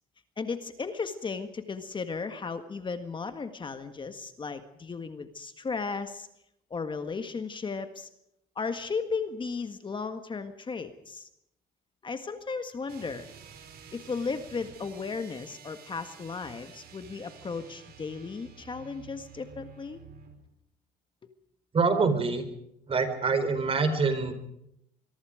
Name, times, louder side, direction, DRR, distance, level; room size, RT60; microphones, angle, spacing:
voice 1, 0.4-6.3 6.7-8.1 8.6-11.3 12.0-13.3 13.9-20.0, left 4 dB, 30° left, 9 dB, 1.7 m, -35 dB
sound 1, 12.9-20.4, right 6 dB, 65° right, 5.2 m, -50 dB
voice 2, 21.7-22.5 22.9-24.3, right 4 dB, 35° right, 10 dB, 4.3 m, -25 dB
24.5 x 23.0 x 5.1 m, 0.76 s
cardioid pair, 110°, 17 cm